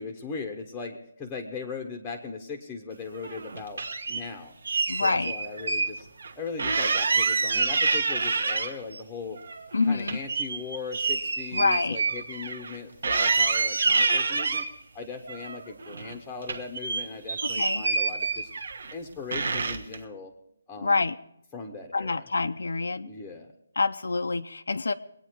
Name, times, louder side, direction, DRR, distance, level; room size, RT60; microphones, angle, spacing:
voice 1, 0.0-3.8 4.1-4.5 5.0-6.1 6.3-9.4 9.9-14.7 14.9-18.5 18.9-20.3 20.7-21.1 21.5-22.3 23.0-23.5, left 4 dB, 5° left, 2 dB, 0.8 m, -38 dB
sound 1, 3.2-4.2 4.6-5.9 6.2-6.3 6.6-9.0 9.4-12.8 13.0-14.7 15.3-16.1 16.4-18.9 19.3-20.0, right 4 dB, 60° right, 1.4 m, -27 dB
voice 2, 4.9-5.3 9.7-10.2 11.5-12.0 17.6-17.8 20.8-21.2 21.9-23.1 23.8-24.9, left 3 dB, 85° left, 8 dB, 0.6 m, -26 dB
22.5 x 9.2 x 4.6 m, 0.77 s
hypercardioid pair, 175°, 0 cm